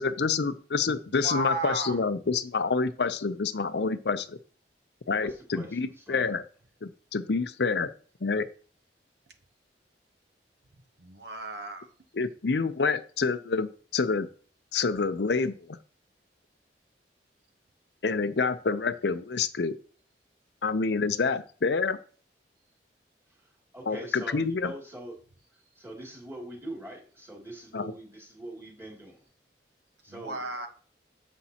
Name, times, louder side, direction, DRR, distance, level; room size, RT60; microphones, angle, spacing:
voice 1, 0.0-4.4 5.1-6.4 6.8-7.9 8.2-8.5 12.1-14.3 14.7-15.6 18.0-19.7 20.6-22.0 23.9-24.7 27.7-27.9, left 4 dB, 70° left, 0.6 m, -27 dB
voice 2, 1.1-2.0 11.0-11.9 30.1-30.7, right 2 dB, 70° right, 1.0 m, -34 dB
voice 3, 5.2-5.7 6.1-6.3 23.7-25.2 25.8-29.2 30.0-30.4, right 1 dB, 15° right, 2.7 m, -43 dB
9.7 x 7.4 x 2.9 m
head